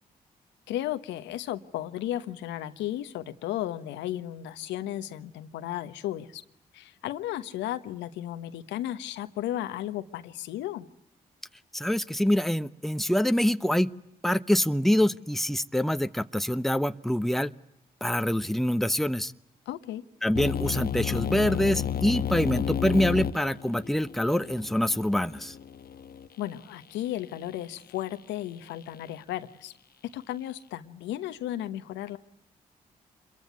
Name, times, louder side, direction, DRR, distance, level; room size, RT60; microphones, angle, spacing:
voice 1, 0.7-6.4 6.7-10.9 19.7-20.0 26.4-29.7 30.1-32.2, left 13 dB, 80° left, 11 dB, 1.1 m, -34 dB
voice 2, 11.7-13.9 14.2-17.5 18.0-19.3 20.2-25.5, left 1 dB, ahead, 12 dB, 1.0 m, -25 dB
sound 1, 20.3-26.3, left 9 dB, 55° left, 1.1 m, -32 dB
27.0 x 22.5 x 9.5 m, 0.76 s
hypercardioid pair, 40°, 18 cm